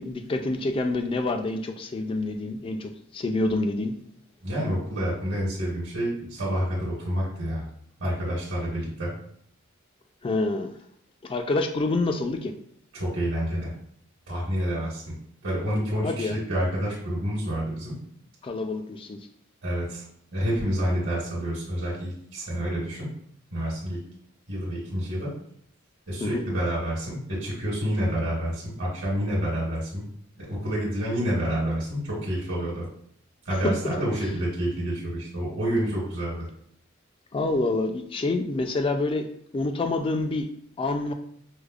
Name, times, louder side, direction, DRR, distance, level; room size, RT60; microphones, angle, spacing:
voice 1, 0.0-3.9 10.2-10.7 11.2-12.5 16.0-16.4 18.4-19.2 26.2-26.4 37.3-40.5 40.8-41.1, left 2 dB, 25° left, 6 dB, 0.3 m, -27 dB
voice 2, 4.4-7.7 8.0-9.1 12.9-13.7 14.3-15.1 15.4-18.0 19.6-20.0 20.3-23.1 23.5-24.0 24.5-25.3 26.1-30.0 30.4-32.9 33.4-36.5, equal, 65° right, -6 dB, 1.2 m, -28 dB
4.8 x 2.0 x 2.4 m, 0.66 s
head